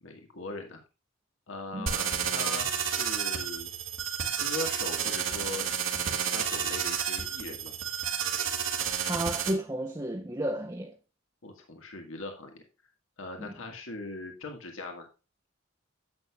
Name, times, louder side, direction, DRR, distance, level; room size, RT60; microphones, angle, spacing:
voice 1, 0.0-0.8 1.5-3.7 4.4-5.7 6.2-7.8 11.4-12.6 13.2-15.1, left 2 dB, 80° left, 1.6 m, -40 dB
sound 1, 1.9-9.5, right 7 dB, 80° right, 1.9 m, -31 dB
voice 2, 9.1-10.9 13.4-13.5, right 1 dB, 20° right, 0.7 m, -32 dB
10.5 x 8.4 x 2.3 m
head